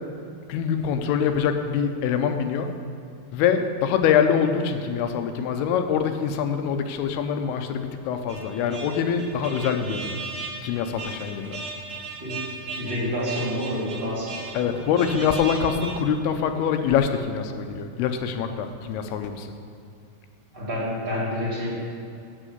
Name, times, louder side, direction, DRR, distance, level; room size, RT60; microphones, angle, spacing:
voice 1, 0.5-2.7 3.3-10.1 10.6-11.7 14.5-19.5, left 7 dB, 85° left, 7 dB, 2.6 m, -24 dB
sound 1, 8.3-16.0, right 3 dB, 60° right, 1.3 m, -37 dB
voice 2, 12.8-14.9 15.6-15.7 20.5-21.7, equal, 20° right, -5 dB, 1.5 m, -29 dB
8.9 x 6.3 x 7.9 m, 2.5 s
omnidirectional pair, 4.5 m